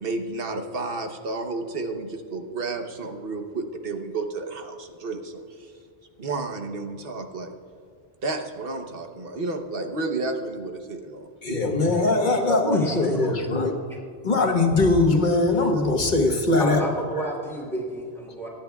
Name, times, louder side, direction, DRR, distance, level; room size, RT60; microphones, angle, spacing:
voice 1, 0.0-5.7 6.2-7.5 8.2-11.3 11.9-12.1, right 3 dB, 60° right, 5 dB, 1.2 m, -31 dB
voice 2, 11.4-13.7 14.2-16.8, left 2 dB, 45° left, 2 dB, 1.4 m, -21 dB
voice 3, 12.4-13.3 16.6-18.5, right 1 dB, ahead, -4 dB, 3.1 m, -31 dB
23.5 x 10.5 x 2.3 m, 2.2 s
omnidirectional pair, 1.1 m